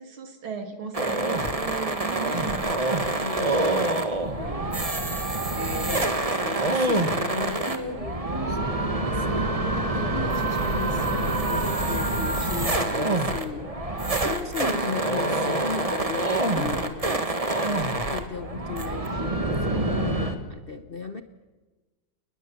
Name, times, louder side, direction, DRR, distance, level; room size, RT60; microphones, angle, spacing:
voice 1, 0.0-2.7, right 5 dB, 85° right, 6 dB, 3.3 m, -36 dB
sound 1, 0.9-20.4, right 2 dB, 20° right, 1.7 m, -26 dB
voice 2, 3.2-3.9 4.3-4.8 5.5-13.8 14.2-21.2, left 4 dB, 40° left, 9 dB, 0.8 m, -36 dB
29.5 x 20.5 x 7.2 m, 1.2 s
omnidirectional pair, 2.2 m